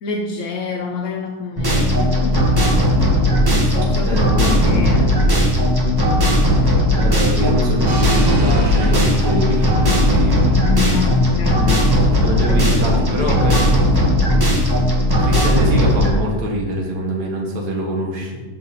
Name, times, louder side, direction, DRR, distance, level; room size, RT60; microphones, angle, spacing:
voice 1, 0.0-2.5 3.4-5.2 10.4-11.7 12.5-13.9, left 5 dB, 70° left, 2 dB, 0.7 m, -28 dB
sound 1, 1.6-16.1, equal, 20° right, 0.6 m, -16 dB
voice 2, 4.1-5.5 6.3-6.7 6.9-11.9 12.2-13.8 15.2-18.4, right 1 dB, 70° right, -1 dB, 1.8 m, -24 dB
sound 2, 7.9-11.9, right 3 dB, 45° right, 0.9 m, -31 dB
6.3 x 4.7 x 4.0 m, 1.2 s
omnidirectional pair, 1.8 m